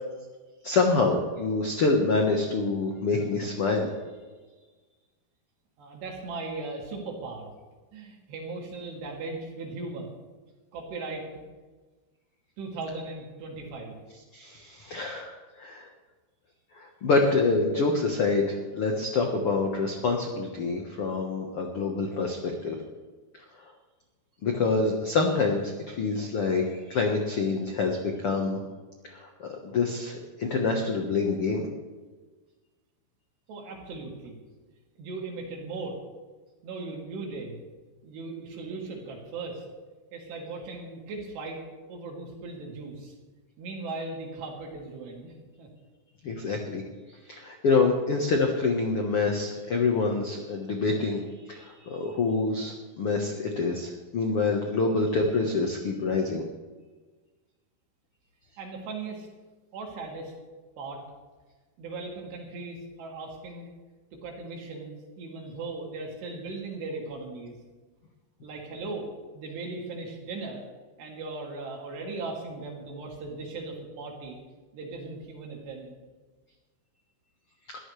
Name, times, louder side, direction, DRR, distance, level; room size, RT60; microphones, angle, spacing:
voice 1, 0.6-3.9 14.3-15.9 16.7-22.7 24.4-28.6 29.0-31.7 46.2-46.8 47.3-51.2 51.5-56.4, left 3 dB, 75° left, 2 dB, 1.3 m, -26 dB
voice 2, 5.8-7.5 7.9-10.1 10.7-11.3 12.6-14.0 33.5-34.4 35.0-36.0 36.6-37.6 38.0-39.6 40.1-41.6 41.9-43.1 43.6-45.7 58.6-59.3 59.7-60.3 60.8-61.0 61.8-63.7 64.1-67.6 68.4-69.1 69.3-70.7 71.0-74.4 74.7-76.0, right 3 dB, 85° right, -1 dB, 4.8 m, -38 dB
22.0 x 14.0 x 3.3 m, 1.3 s
omnidirectional pair, 4.7 m